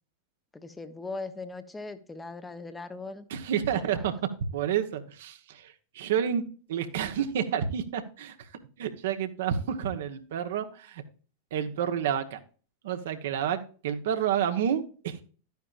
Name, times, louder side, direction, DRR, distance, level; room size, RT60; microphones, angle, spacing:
voice 1, 0.5-3.2 3.7-4.0, left 3 dB, 10° left, 9 dB, 1.0 m, -39 dB
voice 2, 3.3-4.1 4.5-6.4 6.7-8.3 8.8-11.0 11.5-12.4 12.8-15.2, right 9 dB, 55° right, 8 dB, 1.2 m, -29 dB
12.0 x 9.3 x 2.5 m, 0.38 s
figure-of-eight pair, 90°, 0 cm